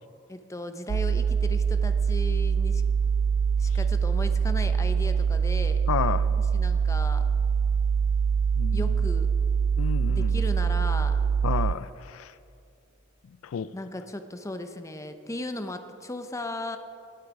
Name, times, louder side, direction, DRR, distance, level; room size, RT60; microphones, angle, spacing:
voice 1, 0.3-2.8 3.6-5.8 6.5-7.2 8.7-9.3 10.1-11.2 13.7-16.8, left 1 dB, 15° left, 8 dB, 0.6 m, -36 dB
sound 1, 0.9-11.7, right 6 dB, 85° right, 0.4 m, -24 dB
voice 2, 5.9-6.3 8.6-8.9 9.8-10.4 11.4-12.3 13.4-13.7, left 7 dB, 85° left, 16 dB, 0.4 m, -31 dB
18.5 x 8.7 x 4.8 m, 2.5 s
head